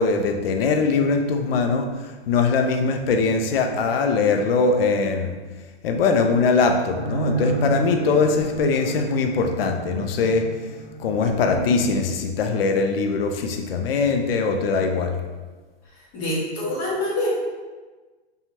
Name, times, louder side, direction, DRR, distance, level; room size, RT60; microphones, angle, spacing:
voice 1, 0.0-1.9 2.3-5.3 5.8-10.5 11.0-15.2, left 4 dB, 60° left, 4 dB, 0.5 m, -21 dB
sound 1, 6.9-12.0, right 2 dB, 20° right, 0.5 m, -30 dB
voice 2, 16.1-17.3, left 1 dB, 25° left, -7 dB, 0.9 m, -26 dB
2.6 x 2.3 x 3.0 m, 1.3 s
hypercardioid pair, 150°, 33 cm